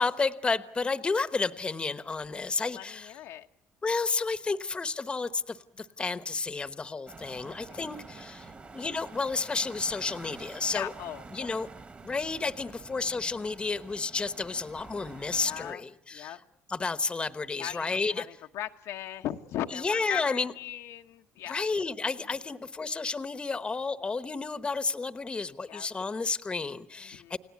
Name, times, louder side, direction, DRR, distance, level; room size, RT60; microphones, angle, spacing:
voice 1, 0.0-3.1 3.8-10.9 11.3-11.7 12.0-16.3 16.7-18.3 19.7-20.5 21.5-27.4, left 4 dB, 20° left, 13 dB, 1.1 m, -31 dB
voice 2, 2.6-3.5 7.5-7.8 8.1-8.8 10.7-11.5 13.0-13.1 15.4-15.8 16.1-16.4 17.6-21.6 25.7-25.9 27.0-27.4, left 12 dB, 80° left, 5 dB, 1.2 m, -39 dB
sound 1, 7.1-15.7, right 4 dB, 25° right, 1.7 m, -48 dB
30.0 x 17.5 x 8.4 m, 0.77 s
cardioid pair, 125°, 5 cm